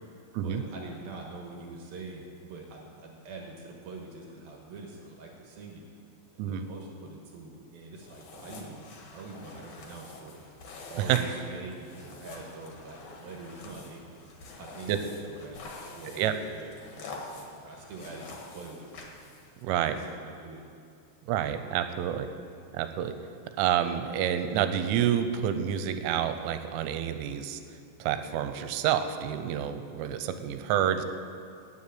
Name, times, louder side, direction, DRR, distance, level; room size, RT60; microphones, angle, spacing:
voice 1, 0.4-5.8 6.4-8.9 9.1-10.4 10.9-14.0 14.6-15.6 15.9-18.9 19.6-20.7, right 3 dB, 70° right, 0 dB, 2.4 m, -44 dB
sound 1, 7.9-19.6, left 3 dB, 65° left, 1.9 m, -46 dB
voice 2, 19.6-20.0 21.3-22.3 22.7-23.1 23.6-27.6 28.0-31.1, right 10 dB, 85° right, 9 dB, 3.1 m, -28 dB
9.6 x 8.4 x 8.5 m, 2.3 s
omnidirectional pair, 5.7 m